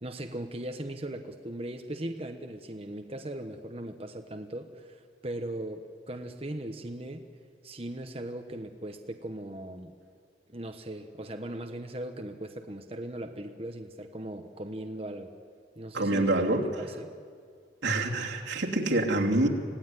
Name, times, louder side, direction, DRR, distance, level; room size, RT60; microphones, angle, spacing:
voice 1, 0.0-7.3 7.6-9.9 10.5-15.3 15.8-17.1, right 1 dB, 30° right, 5 dB, 1.1 m, -39 dB
voice 2, 15.9-16.7 17.8-19.5, right 2 dB, 85° right, -1 dB, 3.1 m, -26 dB
26.0 x 18.0 x 9.8 m, 2.1 s
head